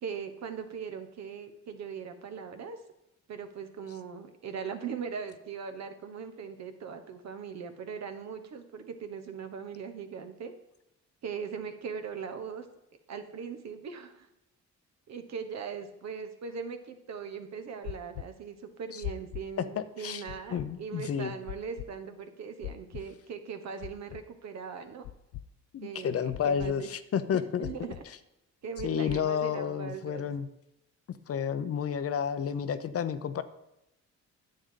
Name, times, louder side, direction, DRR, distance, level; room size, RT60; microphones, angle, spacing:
voice 1, 0.0-2.8 3.3-10.5 11.2-12.6 13.1-14.3 15.1-25.0 25.8-26.9 27.3-28.0 28.6-30.2, right 6 dB, 60° right, 8 dB, 1.2 m, -40 dB
sound 1, 17.8-18.2 19.0-19.4 20.3-20.7 21.5-21.8 22.6-23.0 23.8-24.2 25.0-25.4 26.3-26.7 27.6-28.0 28.8-29.2, left 15 dB, 90° left, 0.5 m, -39 dB
voice 2, 19.6-20.2 20.5-21.3 25.7-27.9 28.8-30.5 31.3-33.4, left 8 dB, 50° left, 12 dB, 0.7 m, -31 dB
10.0 x 7.8 x 3.8 m, 0.88 s
cardioid pair, 90°, 30 cm